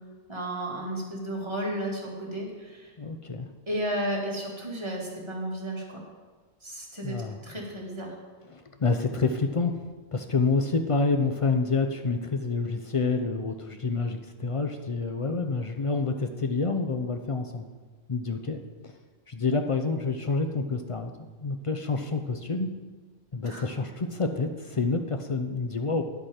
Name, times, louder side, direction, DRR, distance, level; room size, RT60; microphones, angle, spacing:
voice 1, 0.3-2.9 3.7-6.0 6.6-7.2 7.4-8.1 23.4-23.6, right 1 dB, 20° right, -3 dB, 2.0 m, -33 dB
voice 2, 3.0-3.5 7.0-7.4 8.5-9.8 10.1-17.7 18.1-18.6 19.3-21.1 21.4-22.8 23.3-26.0, left 4 dB, 60° left, 6 dB, 0.3 m, -28 dB
10.5 x 7.8 x 4.3 m, 1.4 s
omnidirectional pair, 1.3 m